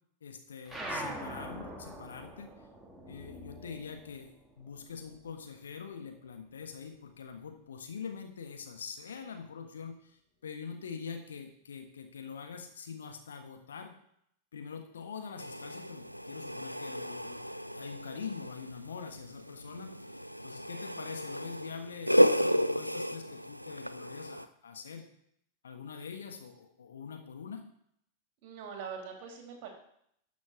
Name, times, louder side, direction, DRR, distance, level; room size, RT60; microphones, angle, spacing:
voice 1, 0.2-2.5 3.1-13.9 14.5-25.1 25.6-27.6, left 6 dB, 65° left, 4 dB, 1.4 m, -44 dB
sound 1, 0.7-5.5 5.8-7.3, right 1 dB, 5° right, 1.7 m, -43 dB
sound 2, 15.4-24.5, equal, 90° right, 0.4 m, -32 dB
voice 2, 28.4-29.7, right 6 dB, 45° right, 2 dB, 2.6 m, -42 dB
12.5 x 6.3 x 4.6 m, 0.70 s
figure-of-eight pair, 90°, 0 cm